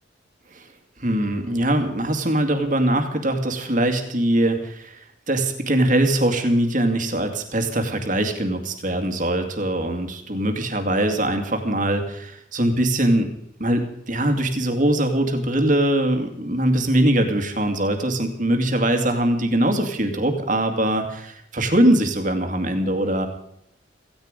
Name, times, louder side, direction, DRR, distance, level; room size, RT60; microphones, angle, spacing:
voice 1, 1.0-13.3 13.6-23.3, right 1 dB, 45° right, 6 dB, 2.2 m, -22 dB
17.0 x 15.5 x 5.2 m, 0.73 s
head